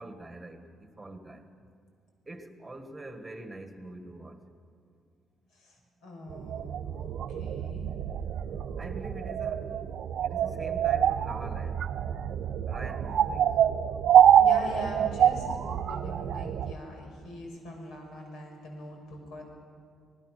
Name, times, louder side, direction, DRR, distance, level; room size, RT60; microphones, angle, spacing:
voice 1, 0.0-1.4 2.3-4.4 8.8-12.1 12.7-13.6, right 2 dB, 10° right, 7 dB, 1.6 m, -44 dB
voice 2, 5.5-8.0 14.3-19.4, left 1 dB, 85° left, 2 dB, 5.7 m, -43 dB
sound 1, 6.3-16.7, right 9 dB, 60° right, 0.8 m, -26 dB
26.5 x 19.5 x 6.6 m, 2.2 s
cardioid pair, 170°, 0 cm